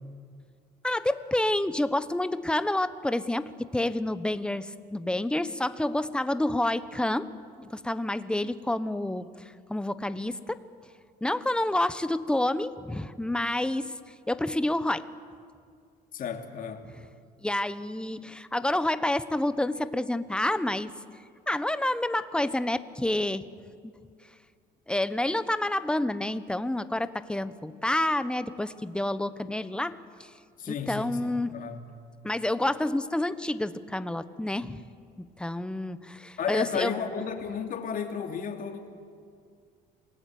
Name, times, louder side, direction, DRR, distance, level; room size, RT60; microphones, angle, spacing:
voice 1, 0.8-7.3 7.6-9.3 9.7-10.6 11.2-15.1 17.4-20.9 21.5-23.4 23.8-23.9 24.9-30.3 30.7-31.5 32.2-34.8 35.2-36.9, left 1 dB, 5° left, 13 dB, 1.0 m, -29 dB
voice 2, 16.1-16.9 30.6-31.8 36.4-38.9, left 7 dB, 55° left, 4 dB, 2.8 m, -33 dB
27.0 x 19.5 x 9.4 m, 2.2 s
cardioid pair, 110°, 17 cm